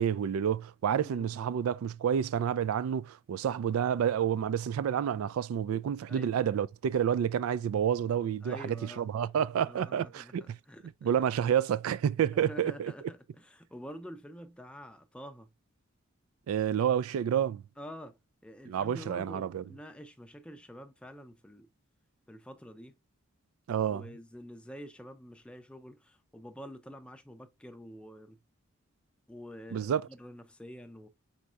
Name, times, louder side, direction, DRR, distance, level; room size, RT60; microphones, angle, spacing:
voice 1, 0.0-10.6 11.0-12.9 16.5-17.6 18.7-19.6 23.7-24.0 29.7-30.0, right 8 dB, 90° right, 0.3 m, -29 dB
voice 2, 0.9-1.3 6.1-6.5 8.4-9.1 9.7-11.3 12.3-15.5 17.8-21.7 22.3-23.0 23.9-28.4 29.3-31.1, equal, 5° left, 0.5 m, -47 dB
4.5 x 4.2 x 2.4 m
head